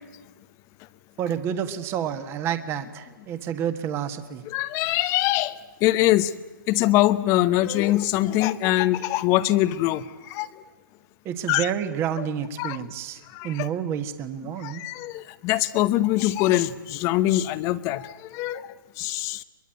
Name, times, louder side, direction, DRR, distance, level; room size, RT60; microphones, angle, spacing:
voice 1, 1.2-4.4 11.2-14.8, right 9 dB, 20° right, 9 dB, 1.5 m, -29 dB
voice 2, 4.5-6.3 6.7-10.5 11.5-11.7 12.2-12.3 12.6-12.8 13.3-13.7 14.6-19.4, left 15 dB, 25° left, 15 dB, 0.8 m, -23 dB
23.0 x 22.0 x 9.1 m, 1.2 s
hypercardioid pair, 140°, 11 cm